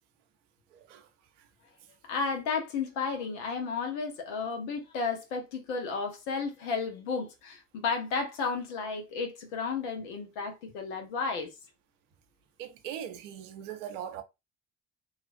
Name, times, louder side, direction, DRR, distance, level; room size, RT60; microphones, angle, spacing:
voice 1, 0.7-1.1 12.6-14.2, right 9 dB, 80° right, 0.7 m, -40 dB
voice 2, 2.1-11.5, left 5 dB, 80° left, 0.9 m, -33 dB
3.0 x 2.5 x 2.5 m
hypercardioid pair, 60°, 36 cm